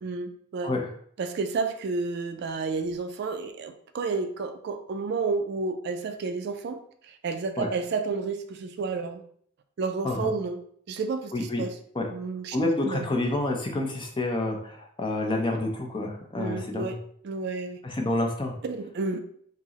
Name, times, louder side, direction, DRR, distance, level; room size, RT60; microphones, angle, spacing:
voice 1, 0.0-0.7 1.2-9.2 9.8-10.6 10.9-11.7 12.1-13.1 16.4-17.0 17.2-17.8 18.6-19.2, right 4 dB, 50° right, 7 dB, 0.3 m, -31 dB
voice 2, 12.5-16.9 17.8-18.5, left 2 dB, 25° left, 2 dB, 0.5 m, -28 dB
4.7 x 2.0 x 2.8 m, 0.62 s
head